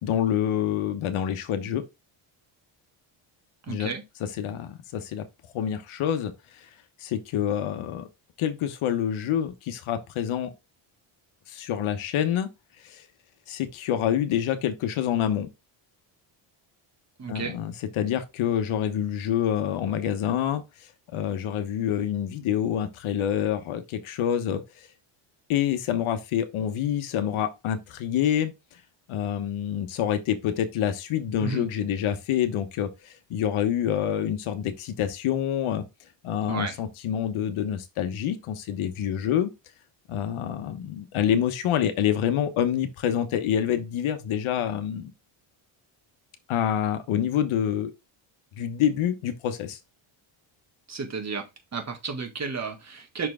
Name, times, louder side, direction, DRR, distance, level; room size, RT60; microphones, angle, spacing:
voice 1, 0.0-1.8 3.7-3.9 4.4-5.3 5.5-6.3 7.0-8.1 8.4-10.5 11.5-12.5 12.8-13.0 13.5-15.5 17.3-20.6 21.1-24.9 25.5-28.5 29.1-35.8 36.2-39.5 40.1-45.1 46.5-47.9 48.6-49.8, left 9 dB, 75° left, 1.2 m, -27 dB
voice 2, 3.7-4.0 17.2-17.6 31.4-31.7 36.5-36.8 50.9-53.3, right 5 dB, 30° right, 1.8 m, -32 dB
6.0 x 4.7 x 3.6 m
cardioid pair, 120°, 49 cm